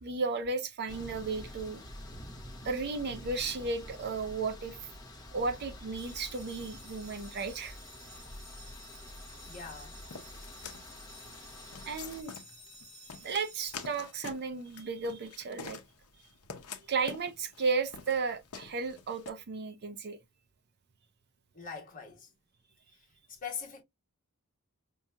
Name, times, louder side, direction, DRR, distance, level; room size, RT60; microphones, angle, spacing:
voice 1, 0.0-1.8 2.6-4.8 5.3-7.8 11.9-12.3 13.2-15.8 16.9-20.2, right 4 dB, 50° right, 0.5 m, -34 dB
sound 1, 0.9-12.2, left 1 dB, 20° left, 0.9 m, -48 dB
sound 2, 5.9-14.6, equal, ahead, 1.6 m, -53 dB
voice 2, 9.5-9.9 21.5-22.3 23.3-23.8, left 6 dB, 35° left, 1.4 m, -42 dB
sound 3, 10.1-19.3, left 6 dB, 85° left, 0.6 m, -47 dB
5.3 x 2.7 x 2.3 m
head